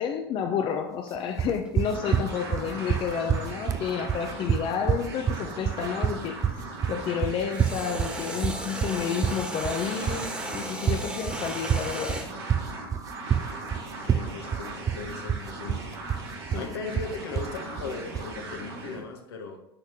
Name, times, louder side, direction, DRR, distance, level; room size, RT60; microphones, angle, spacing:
voice 1, 0.0-12.3 16.5-16.8, left 7 dB, 40° left, 5 dB, 0.8 m, -30 dB
sound 1, 1.3-6.4 7.5-12.3, right 1 dB, 10° right, 1.6 m, -37 dB
sound 2, 1.4-18.4, right 8 dB, 25° right, 0.4 m, -28 dB
sound 3, 1.8-19.0, right 2 dB, 85° right, 3.0 m, -39 dB
voice 2, 14.0-15.8 16.5-19.6, left 5 dB, 80° left, 3 dB, 1.5 m, -38 dB
10.0 x 4.5 x 3.7 m, 0.84 s
hypercardioid pair, 90°, 13 cm